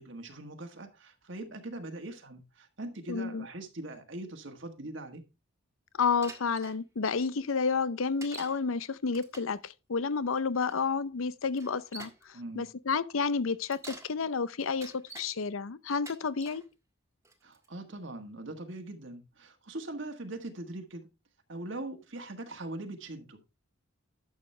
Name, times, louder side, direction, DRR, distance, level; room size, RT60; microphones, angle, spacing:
voice 1, 0.0-5.2 12.3-12.7 17.4-21.1 21.5-23.5, right 2 dB, 60° right, 1.4 m, -41 dB
voice 2, 3.1-3.4 6.0-16.6, left 5 dB, 75° left, 0.6 m, -30 dB
Bicycle, 6.2-6.8 8.2-8.6 9.1-9.6 10.7-10.8 11.5-12.2 13.5-14.1 14.6-15.3 15.9-16.6 17.3-17.7, right 2 dB, 15° right, 1.7 m, -47 dB
11.5 x 7.2 x 3.3 m
head